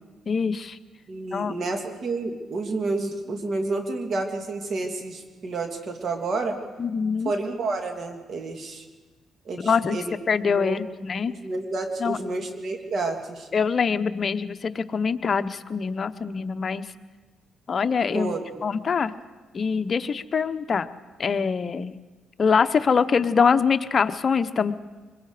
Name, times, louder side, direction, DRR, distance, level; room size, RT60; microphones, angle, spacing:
voice 1, 0.3-0.8 1.3-1.5 6.8-7.3 9.6-10.0 10.3-11.3 12.0-12.2 13.5-16.8 17.7-18.3 18.6-19.1 19.5-20.9 21.2-22.0 22.4-24.7, left 5 dB, 45° left, 11 dB, 0.9 m, -24 dB
voice 2, 1.1-6.6 7.2-8.9 9.4-10.1 10.4-10.8 11.3-13.5 18.1-18.5, right 3 dB, 50° right, 4 dB, 2.8 m, -30 dB
25.0 x 22.0 x 5.0 m, 1.3 s
cardioid pair, 90°, 0 cm